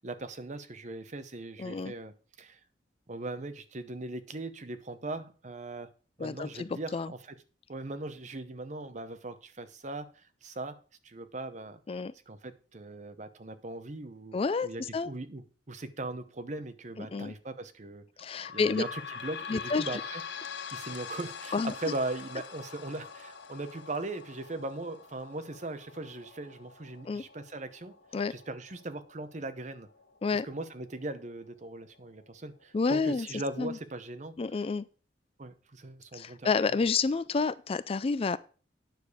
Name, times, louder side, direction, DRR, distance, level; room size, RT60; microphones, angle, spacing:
voice 1, 0.0-2.6 3.1-5.9 6.2-7.2 7.7-11.8 12.3-14.3 14.6-18.0 18.5-20.2 20.7-27.9 28.3-29.9 30.3-34.3 35.4-36.5, right 2 dB, 40° right, 0.8 m, -39 dB
voice 2, 1.6-1.9 6.2-7.1 11.9-12.1 14.3-15.1 17.0-17.3 18.2-18.8 19.5-20.0 21.5-21.7 27.0-27.2 28.1-28.3 30.2-30.5 32.7-33.3 33.6-33.8 34.4-34.9 36.1-38.4, left 4 dB, 30° left, 0.3 m, -29 dB
sound 1, 18.2-31.4 31.9-32.0 32.3-32.4 33.2-33.3, left 6 dB, 70° left, 0.8 m, -44 dB
9.3 x 6.8 x 4.9 m
head